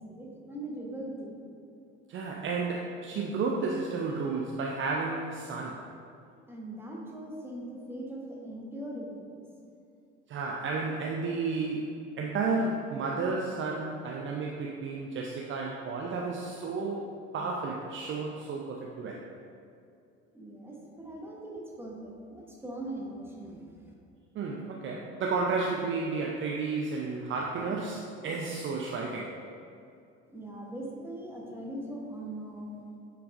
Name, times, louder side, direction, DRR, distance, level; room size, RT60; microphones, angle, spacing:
voice 1, 0.0-1.4 6.5-9.4 20.3-23.9 30.3-32.8, right 1 dB, 5° right, -2 dB, 1.3 m, -40 dB
voice 2, 2.1-5.8 10.3-19.2 24.3-29.4, right 4 dB, 35° right, -1 dB, 0.6 m, -32 dB
9.4 x 4.6 x 2.6 m, 2.5 s
figure-of-eight pair, 60°, 35 cm